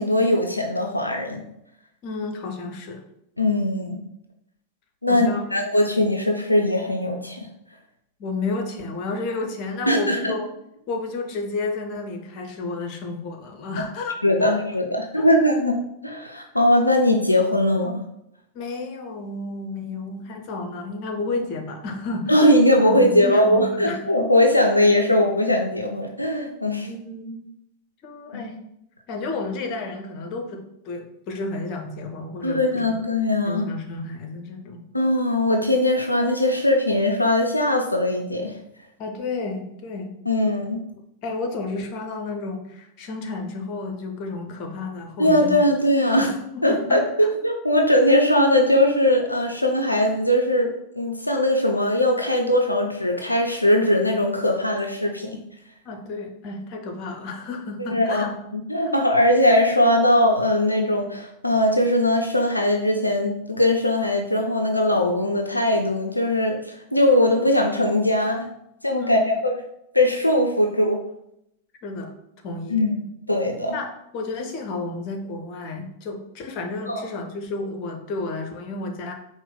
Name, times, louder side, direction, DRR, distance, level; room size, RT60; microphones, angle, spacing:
voice 1, 0.0-1.4 3.4-4.0 5.0-7.4 9.9-10.3 14.2-18.0 22.3-26.9 28.3-28.4 32.4-33.6 34.9-38.5 40.3-40.8 45.2-46.3 46.6-55.4 57.9-68.5 68.8-69.6 69.9-71.0 72.7-73.0 73.3-73.8 76.9-77.0, left 1 dB, 85° left, 2 dB, 0.4 m, -20 dB
voice 2, 2.0-3.0 5.1-5.5 8.2-10.5 10.9-14.5 15.2-15.3 18.5-24.0 26.8-27.5 28.0-28.6 29.1-33.0 33.4-34.9 39.0-40.2 41.2-45.7 46.2-47.0 55.8-58.3 69.0-69.4 71.8-72.1 72.4-72.8 73.7-79.1, left 3 dB, 40° left, 3 dB, 0.7 m, -31 dB
4.4 x 2.1 x 3.8 m, 0.78 s
figure-of-eight pair, 90°, 0 cm